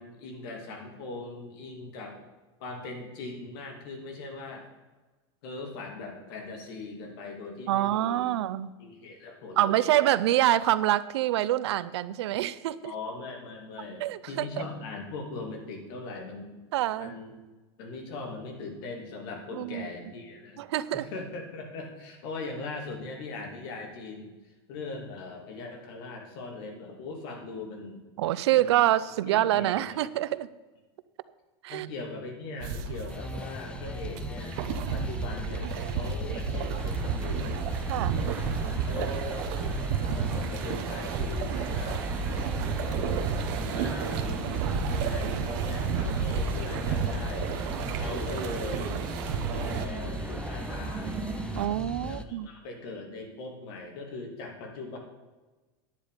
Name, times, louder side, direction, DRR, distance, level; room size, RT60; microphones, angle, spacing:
voice 1, 0.0-2.2 2.6-4.6 5.4-8.3 8.8-10.0 12.8-16.5 17.0-17.3 17.8-20.6 20.9-24.3 24.7-28.0 28.5-28.8 29.3-29.8 31.7-34.6 34.9-37.6 38.6-39.8 40.1-42.0 42.9-47.5 47.9-49.0 49.5-51.2 52.0-55.0, left 3 dB, 60° left, 2 dB, 2.9 m, -40 dB
voice 2, 7.7-8.7 9.6-12.9 14.0-14.5 16.7-17.1 19.5-19.9 20.6-21.1 28.2-30.5 31.6-31.9 37.9-38.2 51.6-52.5, right 14 dB, 85° right, 16 dB, 0.6 m, -26 dB
sound 1, 32.6-49.9, right 6 dB, 55° right, 1.1 m, -32 dB
sound 2, 33.1-52.2, left 2 dB, 5° left, 0.5 m, -39 dB
sound 3, 36.8-51.7, right 4 dB, 15° right, 1.1 m, -39 dB
10.0 x 9.2 x 5.1 m, 1.2 s
supercardioid pair, 155°, 14 cm